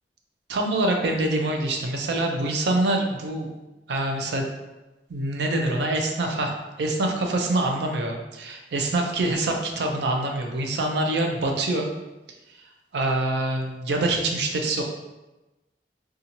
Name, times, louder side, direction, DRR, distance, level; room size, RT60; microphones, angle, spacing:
voice 1, 0.5-3.5 3.9-4.4 5.1-6.5 6.8-11.9 12.9-14.8, right 2 dB, 70° right, 2 dB, 0.4 m, -25 dB
2.8 x 2.4 x 2.6 m, 1.1 s
head